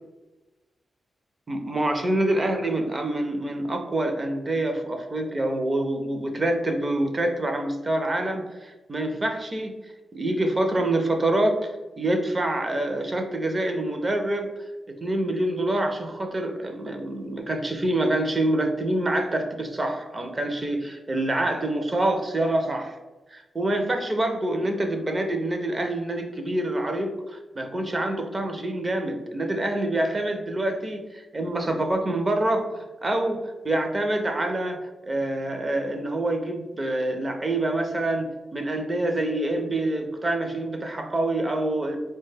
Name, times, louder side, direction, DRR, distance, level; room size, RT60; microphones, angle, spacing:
voice 1, 1.5-9.7 10.1-14.5 15.0-23.0 23.3-42.0, right 1 dB, 25° right, 4 dB, 0.4 m, -26 dB
4.1 x 2.2 x 3.2 m, 1.1 s
wide cardioid pair, 150°, 0 cm